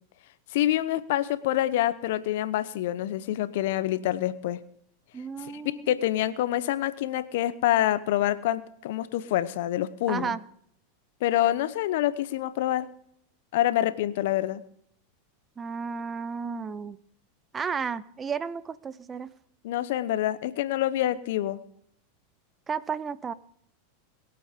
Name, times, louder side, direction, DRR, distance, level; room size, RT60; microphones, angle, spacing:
voice 1, 0.5-4.6 5.4-10.4 11.2-12.9 13.5-14.6 19.6-21.6, left 13 dB, 65° left, 16 dB, 0.9 m, -26 dB
voice 2, 5.1-6.0 10.1-10.4 15.6-17.0 17.5-19.3 22.7-23.3, right 6 dB, 25° right, 17 dB, 0.7 m, -33 dB
21.5 x 8.6 x 5.1 m, 0.69 s
hypercardioid pair, 100°, 0 cm